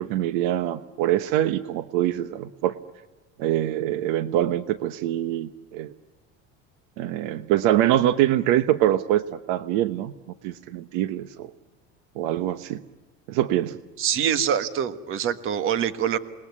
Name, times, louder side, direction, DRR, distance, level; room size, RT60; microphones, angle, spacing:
voice 1, 0.0-2.7 3.4-5.9 7.0-10.1 10.4-11.5 12.2-12.8 13.3-13.8, right 12 dB, 70° right, 13 dB, 1.1 m, -24 dB
voice 2, 14.0-16.2, right 9 dB, 40° right, 12 dB, 1.5 m, -25 dB
28.5 x 20.5 x 9.7 m, 1.2 s
cardioid pair, 165°, 33 cm